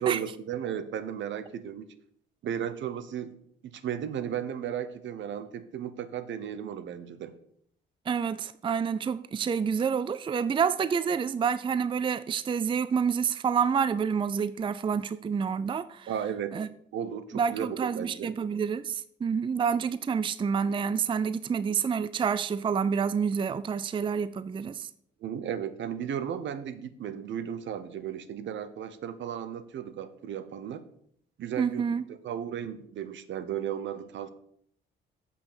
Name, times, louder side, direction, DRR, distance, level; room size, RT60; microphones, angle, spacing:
voice 1, 0.0-1.9 2.4-3.4 3.6-7.3 16.1-16.6 16.9-18.3 25.2-30.8 31.4-31.8 32.1-34.3, right 9 dB, 70° right, 1.0 m, -35 dB
voice 2, 8.1-16.1 16.5-16.7 17.3-24.9 31.6-32.0, right 6 dB, 25° right, 0.4 m, -28 dB
8.2 x 5.7 x 6.8 m
cardioid pair, 90°, 20 cm